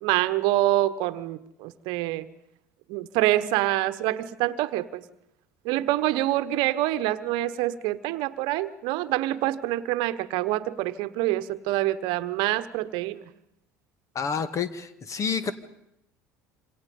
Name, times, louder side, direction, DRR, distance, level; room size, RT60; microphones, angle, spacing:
voice 1, 0.0-2.3 2.9-5.0 5.6-13.2, right 15 dB, 65° right, 13 dB, 1.2 m, -26 dB
voice 2, 14.1-15.5, left 6 dB, 35° left, 12 dB, 2.1 m, -29 dB
27.0 x 26.5 x 5.4 m, 0.82 s
hypercardioid pair, 70°, 9 cm